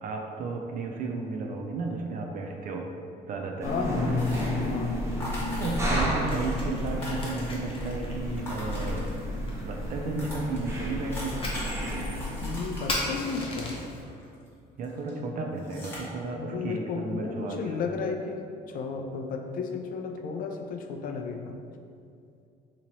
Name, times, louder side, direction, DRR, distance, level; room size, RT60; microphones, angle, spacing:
voice 1, 0.0-2.9 3.3-3.7 5.2-9.1 9.6-11.5 14.8-17.8, right 3 dB, 55° right, 2 dB, 0.4 m, -33 dB
voice 2, 3.6-4.3 4.7-4.9 12.4-13.7 16.4-21.5, left 5 dB, 55° left, 4 dB, 0.4 m, -33 dB
sound 1, 3.6-12.8, equal, 15° right, 0.8 m, -31 dB
sound 2, 4.2-4.8 5.2-6.1 6.4-6.5 6.7-7.8 8.3-9.4 9.9-10.0 10.2-14.5 14.8-15.1 15.6-16.0, equal, 15° left, 1.2 m, -41 dB
Fire, 5.6-14.0, left 2 dB, 30° left, 0.8 m, -39 dB
2.9 x 2.9 x 3.9 m, 2.4 s
cardioid pair, 110°, 17 cm